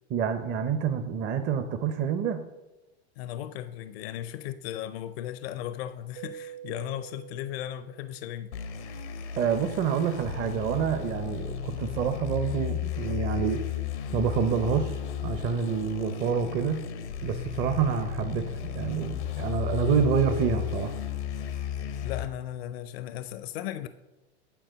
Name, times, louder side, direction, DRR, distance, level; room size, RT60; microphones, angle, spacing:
voice 1, 0.1-2.4 9.4-13.6 14.1-15.0 15.2-16.8 17.2-20.9, right 7 dB, 35° right, 7 dB, 0.7 m, -27 dB
voice 2, 3.2-8.5 22.0-23.9, left 12 dB, 65° left, 13 dB, 0.6 m, -36 dB
Keyboard (musical), 6.2-8.7, right 11 dB, 65° right, 0.9 m, -46 dB
sound 1, 8.5-22.3, left 9 dB, 90° left, 0.9 m, -34 dB
9.1 x 4.3 x 6.3 m, 1.0 s
hypercardioid pair, 110°, 33 cm